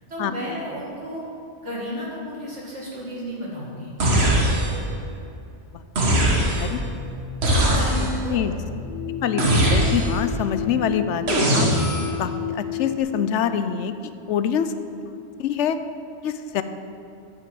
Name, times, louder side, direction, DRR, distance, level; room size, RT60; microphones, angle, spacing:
voice 1, 0.1-1.2 1.6-3.9 7.7-8.4, equal, 85° right, -5 dB, 2.7 m, -33 dB
sound 1, 4.0-4.9 6.0-6.8 7.4-8.3 9.4-10.3 11.3-12.2, right 1 dB, 65° right, 1.6 m, -20 dB
sound 2, 6.8-13.0, left 8 dB, 10° right, 2.4 m, -33 dB
voice 2, 9.2-11.7 12.2-13.9 14.3-14.7 15.1-15.8 16.2-16.6, left 8 dB, 80° left, 11 dB, 0.9 m, -25 dB
8.4 x 6.1 x 7.7 m, 2.6 s
omnidirectional pair, 1.2 m